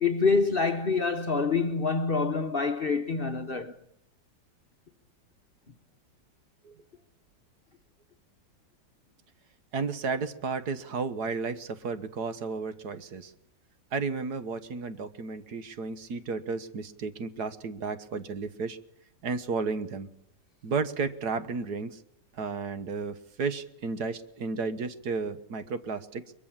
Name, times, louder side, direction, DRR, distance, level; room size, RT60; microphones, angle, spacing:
voice 1, 0.0-3.7, left 4 dB, 40° left, 1.1 m, -26 dB
voice 2, 9.7-13.3 13.9-18.8 19.2-20.1 20.6-22.0 22.3-26.2, right 4 dB, 65° right, 1.8 m, -33 dB
22.5 x 22.5 x 7.4 m
omnidirectional pair, 1.9 m